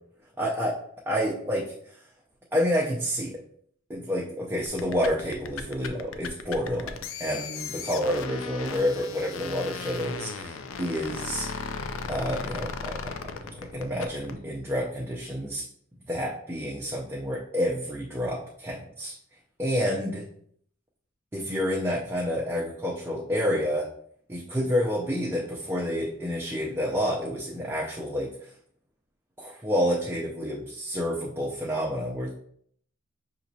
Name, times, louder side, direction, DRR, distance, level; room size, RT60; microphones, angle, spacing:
voice 1, 0.4-0.8 1.1-1.9 2.5-3.4 3.9-11.5 12.1-15.6 16.1-19.1 19.6-20.2 21.3-23.9 24.3-28.5 29.4-32.3, equal, 10° right, -4 dB, 0.5 m, -29 dB
sound 1, 4.7-14.4, left 5 dB, 75° left, 0.4 m, -36 dB
6.2 x 2.9 x 2.7 m, 0.64 s
head